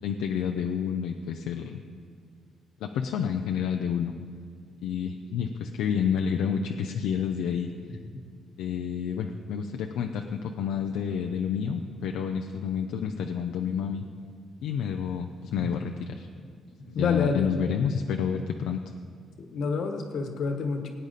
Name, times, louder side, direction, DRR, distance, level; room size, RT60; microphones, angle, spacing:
voice 1, 0.0-1.8 2.8-4.1 4.8-7.7 8.6-14.0 14.6-16.3 16.9-18.8, left 7 dB, 90° left, 4 dB, 0.5 m, -29 dB
voice 2, 16.8-17.5 19.4-20.9, left 4 dB, 70° left, 5 dB, 1.4 m, -29 dB
18.5 x 8.9 x 4.1 m, 2.1 s
cardioid pair, 90°, 0 cm